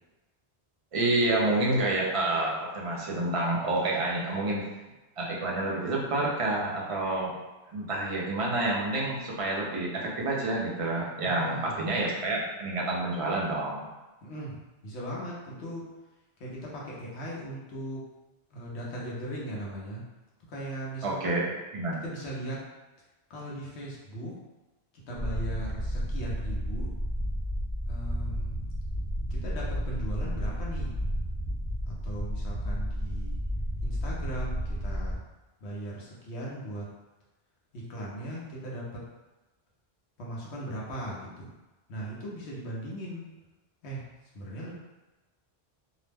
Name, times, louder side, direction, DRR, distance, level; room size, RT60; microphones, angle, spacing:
voice 1, 0.9-4.7 5.2-7.4 7.7-13.9 21.0-21.4 21.7-22.0, right 2 dB, 40° right, -3 dB, 0.5 m, -28 dB
voice 2, 11.2-12.0 14.2-14.6 14.8-15.9 16.4-18.0 18.5-20.0 20.5-21.5 22.0-22.6 23.3-24.4 25.1-26.9 27.9-28.6 29.3-30.9 31.9-33.4 33.8-35.2 35.6-36.9 37.7-39.0 40.2-41.5 41.9-43.3 43.8-44.0 44.3-44.7, right 1 dB, 90° left, -4 dB, 1.1 m, -38 dB
sound 1, 25.1-35.2, equal, ahead, 0.6 m, -32 dB
2.8 x 2.0 x 3.3 m, 1.1 s
omnidirectional pair, 1.1 m